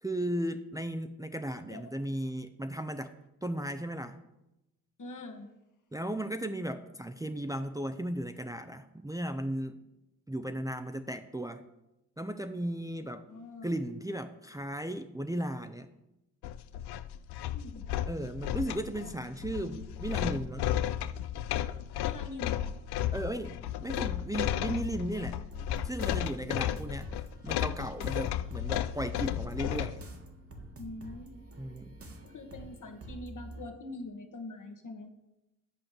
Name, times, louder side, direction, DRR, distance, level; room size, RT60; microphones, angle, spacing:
voice 1, 0.0-3.1 3.4-4.2 5.9-9.8 10.3-11.6 12.2-13.3 13.6-15.9 18.1-20.7 23.1-25.4 25.8-27.1 27.4-30.0 31.6-32.0, right 1 dB, 10° right, 7 dB, 0.7 m, -36 dB
voice 2, 5.0-5.5 13.3-13.7 17.5-17.9 22.0-22.7 26.4-26.8 30.8-31.3 32.2-35.1, left 2 dB, 50° left, 4 dB, 1.6 m, -44 dB
sound 1, 16.4-30.0, left 11 dB, 75° left, 0.5 m, -34 dB
sound 2, 25.5-33.7, right 1 dB, 35° right, 1.6 m, -48 dB
8.3 x 5.1 x 7.5 m, 0.92 s
supercardioid pair, 45°, 39 cm